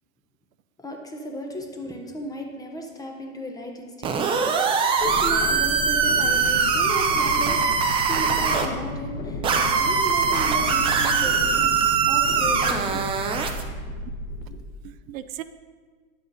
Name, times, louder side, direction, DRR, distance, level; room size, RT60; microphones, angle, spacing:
voice 1, 0.8-13.1 14.3-14.6, equal, 10° left, 2 dB, 0.8 m, -35 dB
sound 1, 4.0-8.7 9.4-13.6, right 5 dB, 15° right, 0.4 m, -22 dB
sound 2, 5.0-14.4, left 2 dB, 70° left, 1.5 m, -33 dB
voice 2, 14.5-15.4, right 14 dB, 70° right, 12 dB, 0.6 m, -38 dB
10.0 x 7.9 x 4.0 m, 1.5 s
supercardioid pair, 140°, 41 cm